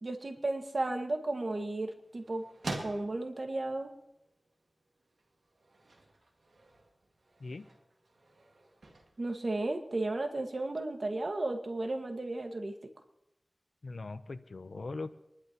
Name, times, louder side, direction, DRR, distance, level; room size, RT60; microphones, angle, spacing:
voice 1, 0.0-2.4 2.8-3.9 9.2-12.7, right 2 dB, 65° right, 4 dB, 1.7 m, -34 dB
sound 1, 0.6-10.4, right 2 dB, 90° right, 2.0 m, -48 dB
voice 2, 13.8-15.1, left 3 dB, 80° left, 11 dB, 0.8 m, -40 dB
27.0 x 11.5 x 3.0 m, 0.89 s
cardioid pair, 40°, 0 cm